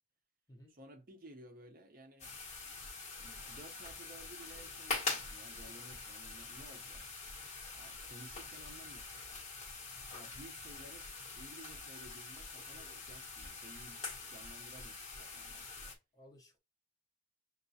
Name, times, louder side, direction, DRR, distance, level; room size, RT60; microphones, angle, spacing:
voice 1, 0.7-2.3 3.2-7.1 7.7-9.3 10.1-15.7, right 1 dB, 45° right, 0.6 m, -56 dB
sound 1, 2.2-15.9, left 3 dB, 35° left, 1.1 m, -44 dB
voice 2, 15.8-16.6, equal, 20° left, 0.7 m, -59 dB
6.6 x 2.3 x 2.6 m
head